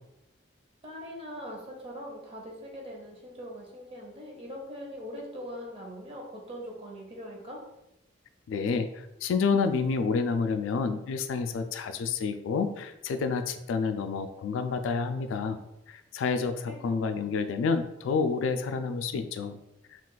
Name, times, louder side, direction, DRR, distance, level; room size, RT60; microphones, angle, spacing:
voice 1, 0.8-7.6 16.6-16.8, equal, 30° right, -1 dB, 0.7 m, -41 dB
voice 2, 8.5-8.9 9.2-19.6, left 5 dB, 85° left, 8 dB, 0.3 m, -29 dB
2.4 x 2.3 x 3.8 m, 0.87 s
head